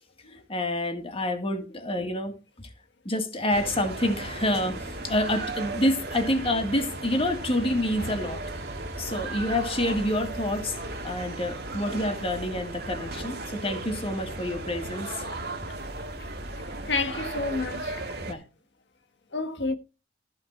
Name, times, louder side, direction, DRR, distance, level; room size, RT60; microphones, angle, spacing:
voice 1, 0.3-2.7 3.1-8.4 9.0-10.7 11.0-15.3 18.3-18.4, left 1 dB, 35° left, 2.0 m, -28 dB
sound 1, 3.5-18.3, right 2 dB, 65° right, 1.9 m, -36 dB
voice 2, 16.8-18.0 19.3-19.7, left 3 dB, 85° left, 1.4 m, -30 dB
14.5 x 5.1 x 4.4 m
head